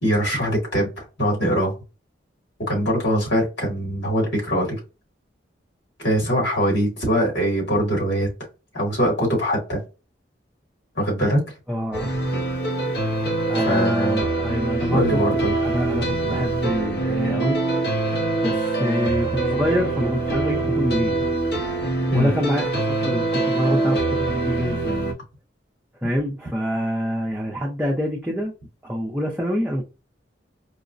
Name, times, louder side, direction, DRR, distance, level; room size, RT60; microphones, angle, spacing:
voice 1, 0.0-1.7 2.7-4.8 6.0-8.3 8.7-9.8 11.0-11.4 13.6-14.3 14.9-15.5 22.1-22.3, equal, 80° left, 2.0 m, -22 dB
voice 2, 11.7-12.1 13.5-15.2 15.6-17.6 18.4-21.2 22.1-25.0 26.0-28.5 28.8-29.8, equal, 5° right, 0.5 m, -26 dB
sound 1, 11.9-25.1, right 2 dB, 60° left, 0.8 m, -24 dB
4.7 x 2.1 x 2.5 m
head